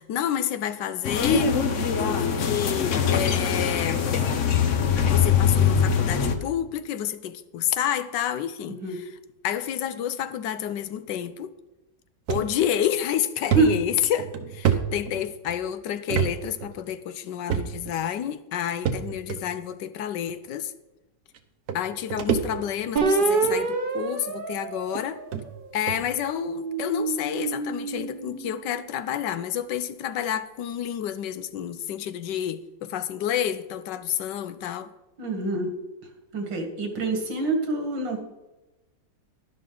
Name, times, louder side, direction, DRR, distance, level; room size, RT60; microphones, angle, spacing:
voice 1, 0.0-1.5 2.0-4.1 5.1-9.2 9.4-11.5 12.3-20.7 21.7-25.2 25.7-34.9, left 10 dB, 75° left, 1.3 m, -29 dB
sound 1, 1.0-6.4, left 7 dB, 55° left, 1.0 m, -22 dB
sound 2, 12.3-12.5 12.9-13.0 13.5-15.5 16.1-16.3 16.6-16.7 17.5-18.0 18.9-19.4 20.3-20.4 21.3-21.4 21.7-22.9 23.3-23.6 24.4-24.5 24.9-25.0 25.3-25.4 25.9-26.1, right 8 dB, 60° right, 1.3 m, -27 dB
sound 3, 23.0-25.6 26.2-28.7, right 4 dB, 40° right, 0.8 m, -28 dB
voice 2, 35.2-35.7 36.3-38.2, right 3 dB, 80° right, 2.5 m, -25 dB
11.5 x 11.5 x 3.9 m
omnidirectional pair, 2.0 m